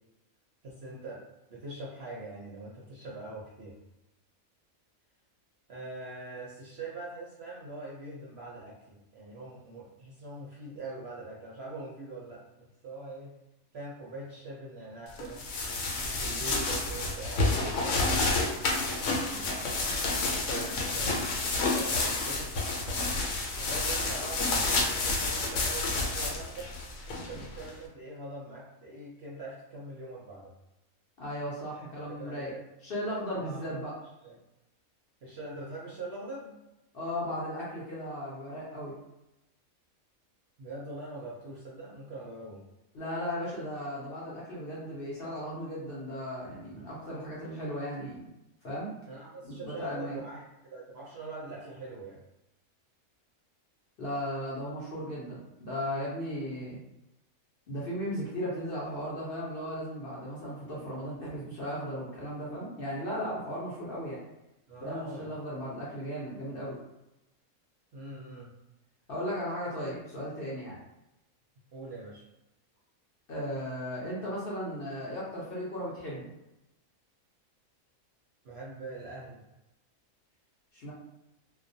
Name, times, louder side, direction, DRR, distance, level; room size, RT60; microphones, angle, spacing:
voice 1, 0.6-3.8 5.7-13.3 13.7-15.4 16.1-18.7 19.3-21.3 21.6-22.5 23.6-26.7 27.1-30.5 32.1-32.7 33.3-33.7 34.2-34.3 35.2-36.6 40.6-42.6 49.1-52.2 64.7-65.3 67.9-68.5 71.7-72.2 78.4-79.4, right 2 dB, 60° right, -5 dB, 0.7 m, -43 dB
sound 1, 15.2-27.7, left 3 dB, 75° left, 1.0 m, -30 dB
voice 2, 31.2-32.5 32.8-33.9 36.9-38.9 42.9-48.3 48.6-48.9 49.4-50.2 54.0-56.8 57.7-64.2 64.8-66.7 69.1-70.8 73.3-76.3 80.7-80.9, equal, 55° left, -7 dB, 0.7 m, -36 dB
2.3 x 2.2 x 2.6 m, 0.93 s
omnidirectional pair, 1.5 m